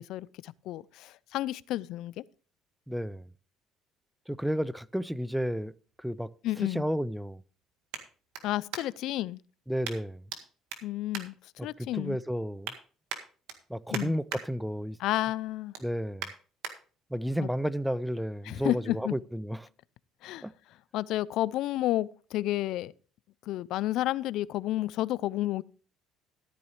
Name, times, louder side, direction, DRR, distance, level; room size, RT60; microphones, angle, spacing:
voice 1, 0.0-2.2 6.4-6.8 8.4-9.4 10.8-11.4 11.6-12.2 13.9-14.1 15.0-15.7 17.4-17.5 18.4-19.1 20.2-20.5 20.9-22.9 23.5-25.6, left 15 dB, 70° left, 0.4 m, -31 dB
voice 2, 2.9-3.3 4.3-6.3 6.6-7.4 9.7-10.2 11.6-12.7 13.7-15.0 15.8-16.3 17.1-19.7 20.4-20.5, equal, ahead, 0.4 m, -32 dB
sound 1, 5.7-9.2 9.8-10.4 10.7-12.0 12.4-12.8 13.1-14.4 14.8-15.1 15.4-16.7 17.3-17.4, right 8 dB, 85° right, 1.8 m, -41 dB
13.5 x 9.1 x 3.2 m
cardioid pair, 100°, 0 cm